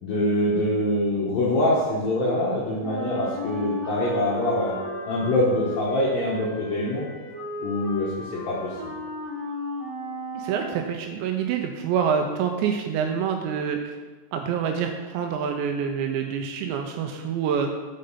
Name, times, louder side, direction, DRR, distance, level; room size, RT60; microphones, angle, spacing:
voice 1, 0.0-4.8 5.1-7.0 7.6-8.1 8.5-8.9, left 1 dB, 75° left, -6 dB, 2.1 m, -24 dB
Wind instrument woodwind instrument, 2.8-10.9, left 1 dB, 25° right, 2.2 m, -35 dB
voice 2, 10.3-14.0 14.3-17.8, right 7 dB, 85° right, 4 dB, 2.6 m, -26 dB
6.6 x 5.1 x 5.4 m, 1.3 s
omnidirectional pair, 5.4 m